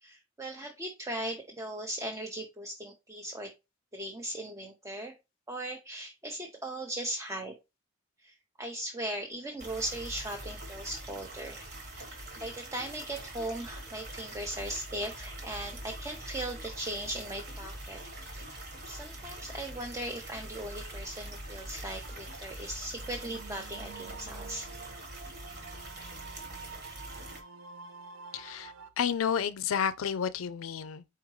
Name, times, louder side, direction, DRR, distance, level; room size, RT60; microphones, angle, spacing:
voice 1, 0.0-3.5 3.9-5.1 5.5-7.5 8.2-11.7 12.0-18.0 18.3-18.6 18.8-24.7, right 1 dB, 15° right, 0.6 m, -38 dB
sound 1, 9.6-27.4, right 1 dB, 50° right, 1.4 m, -44 dB
sound 2, 22.0-28.9, right 5 dB, 80° right, 0.6 m, -49 dB
voice 2, 28.3-31.0, left 7 dB, 80° left, 0.4 m, -31 dB
4.5 x 3.5 x 3.2 m
head